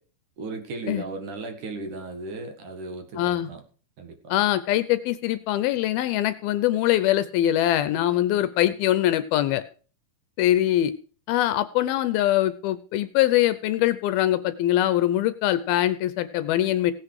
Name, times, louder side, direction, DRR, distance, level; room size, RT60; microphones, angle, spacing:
voice 1, 0.4-3.6 4.0-4.3, right 3 dB, 55° right, 5 dB, 2.9 m, -36 dB
voice 2, 3.2-3.5 4.3-9.6 10.4-10.9 11.3-16.9, left 13 dB, 75° left, 13 dB, 2.4 m, -23 dB
17.0 x 8.8 x 4.8 m, 0.40 s
omnidirectional pair, 4.7 m